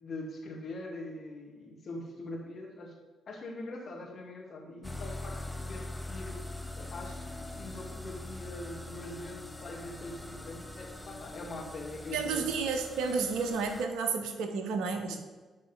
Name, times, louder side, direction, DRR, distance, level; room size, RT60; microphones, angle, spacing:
voice 1, 0.0-3.0 3.3-6.4 6.8-12.6 15.1-15.2, left 2 dB, 50° left, -1 dB, 2.0 m, -43 dB
sound 1, 4.8-13.9, left 2 dB, 5° left, 0.8 m, -42 dB
voice 2, 12.1-15.2, right 5 dB, 65° right, 6 dB, 0.8 m, -31 dB
11.0 x 4.0 x 5.4 m, 1.3 s
figure-of-eight pair, 40°, 0 cm